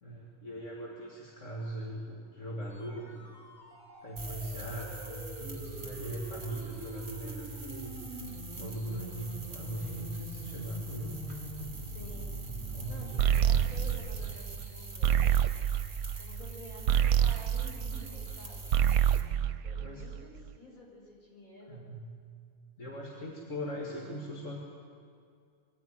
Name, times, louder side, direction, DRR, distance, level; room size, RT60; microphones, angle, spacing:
voice 1, 0.0-3.2 4.0-8.0 8.6-11.2 12.4-13.1 19.8-20.0 21.7-22.1 22.8-24.6, equal, 55° left, -4 dB, 2.5 m, -40 dB
sound 1, 2.8-13.9, right 2 dB, 30° left, 5.4 m, -44 dB
sound 2, 4.2-19.2, right 3 dB, 35° right, 2.1 m, -44 dB
voice 2, 11.9-12.3 12.9-15.3 16.2-18.7 19.6-21.9, left 1 dB, 70° left, -3 dB, 6.2 m, -50 dB
sound 3, 13.2-18.4 18.6-20.4, right 10 dB, 75° right, 1.1 m, -27 dB
22.5 x 14.0 x 9.0 m, 2.3 s
omnidirectional pair, 1.5 m